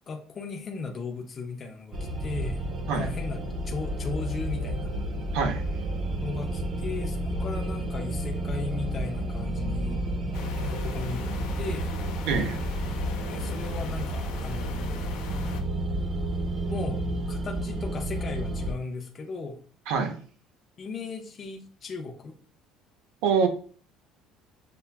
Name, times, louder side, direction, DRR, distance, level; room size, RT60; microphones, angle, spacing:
voice 1, 0.1-2.6 2.9-4.9 6.2-10.1 10.4-11.3 11.6-11.9 13.3-15.0 16.7-19.6 20.8-22.4, left 4 dB, 20° left, 2 dB, 0.5 m, -37 dB
sound 1, 1.9-18.7, right 1 dB, 30° right, 0.5 m, -31 dB
sound 2, 10.3-15.6, left 7 dB, 80° left, 0.5 m, -42 dB
voice 2, 12.3-12.6 19.9-20.1 23.2-23.5, right 6 dB, 70° right, 6 dB, 0.7 m, -25 dB
6.7 x 2.4 x 2.2 m, 0.43 s
cardioid pair, 175°, 0 cm